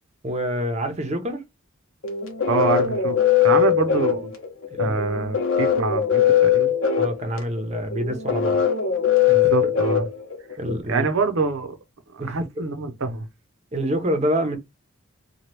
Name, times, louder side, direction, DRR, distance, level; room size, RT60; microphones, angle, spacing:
voice 1, 0.2-1.4 4.7-4.9 7.0-8.6 9.2-9.3 10.6-11.0 12.2-12.4 13.7-14.6, equal, 35° right, 0.7 m, -26 dB
sound 1, 2.0-10.7, left 9 dB, 75° left, 0.9 m, -21 dB
voice 2, 2.5-3.2 3.4-4.4 4.8-6.7 9.3-10.1 10.9-11.7 12.2-13.3, right 4 dB, 80° right, 0.6 m, -25 dB
2.9 x 2.3 x 3.2 m
head